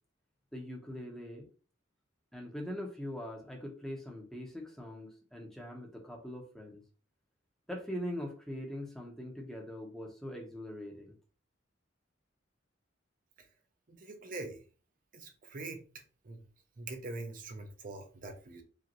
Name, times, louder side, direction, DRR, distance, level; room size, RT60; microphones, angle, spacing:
voice 1, 0.5-1.5 2.3-6.8 7.7-11.1, left 1 dB, ahead, 1 dB, 0.8 m, -42 dB
voice 2, 14.0-14.6 15.1-15.8 16.3-16.4 16.8-18.6, right 2 dB, 45° right, 4 dB, 0.6 m, -43 dB
5.1 x 2.5 x 2.9 m, 0.36 s
head